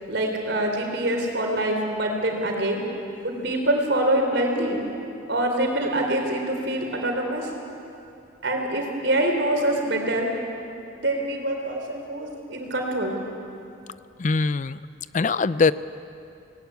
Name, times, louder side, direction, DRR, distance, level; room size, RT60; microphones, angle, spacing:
voice 1, 0.1-2.8 3.2-4.8 5.3-7.5 8.4-10.3 11.0-13.2, right 1 dB, 65° right, 2 dB, 3.9 m, -25 dB
voice 2, 14.2-14.7 15.1-15.7, left 4 dB, 40° left, 16 dB, 0.4 m, -21 dB
19.0 x 18.0 x 9.4 m, 2.6 s
head